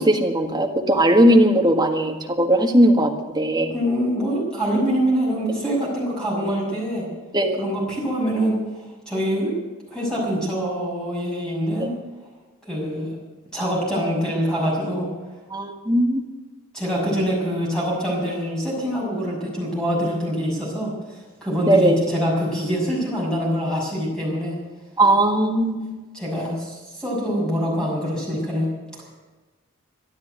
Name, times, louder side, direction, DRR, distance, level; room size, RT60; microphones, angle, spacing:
voice 1, 0.0-3.1 3.3-3.7 7.3-7.6 11.8-11.9 15.5-16.2 21.7-22.0 25.0-25.9, right 1 dB, 20° right, 3 dB, 1.6 m, -18 dB
voice 2, 3.7-7.0 7.6-9.5 9.9-11.9 12.7-13.1 13.5-15.1 16.7-24.5 26.1-28.7, equal, 5° left, -4 dB, 6.5 m, -24 dB
13.0 x 12.0 x 9.2 m, 1.2 s
head